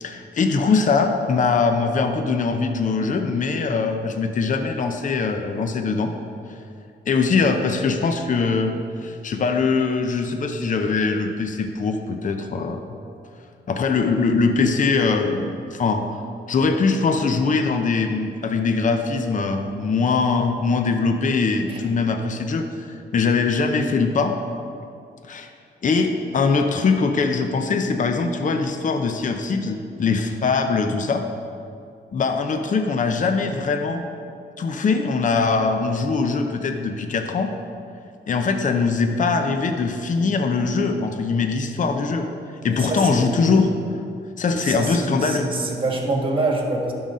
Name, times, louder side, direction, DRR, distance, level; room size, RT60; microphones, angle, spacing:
voice 1, 0.0-6.1 6.5-6.6 7.1-8.7 9.0-12.8 13.7-16.0 16.5-24.3 25.2-25.5 25.8-31.2 32.1-34.0 34.6-37.5 38.3-42.3 42.6-43.7 44.4-45.5, left 4 dB, 45° left, 5 dB, 0.6 m, -22 dB
voice 2, 42.6-43.6 44.6-46.9, right 2 dB, 30° right, 1 dB, 1.5 m, -26 dB
11.0 x 4.0 x 6.3 m, 2.5 s
cardioid pair, 95°, 19 cm